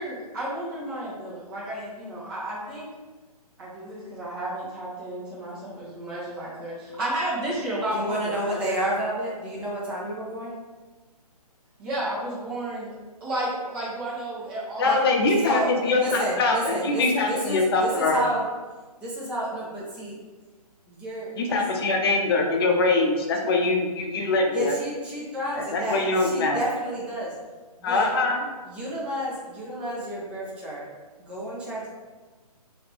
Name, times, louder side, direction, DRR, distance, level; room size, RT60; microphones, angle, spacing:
voice 1, 0.0-2.9 3.6-8.8 11.8-12.9 13.2-15.1, right 1 dB, 35° right, -10 dB, 1.3 m, -32 dB
voice 2, 7.9-10.5 14.8-15.0 15.4-18.5 19.0-20.2 20.9-21.6 24.5-27.3 27.8-28.1 28.6-30.9 31.2-31.9, right 1 dB, 5° right, -6 dB, 0.4 m, -31 dB
voice 3, 14.8-18.2 21.4-24.7 25.6-26.6 27.8-28.4, left 3 dB, 35° left, 1 dB, 0.6 m, -23 dB
3.1 x 2.9 x 3.5 m, 1.3 s
hypercardioid pair, 150°, 20 cm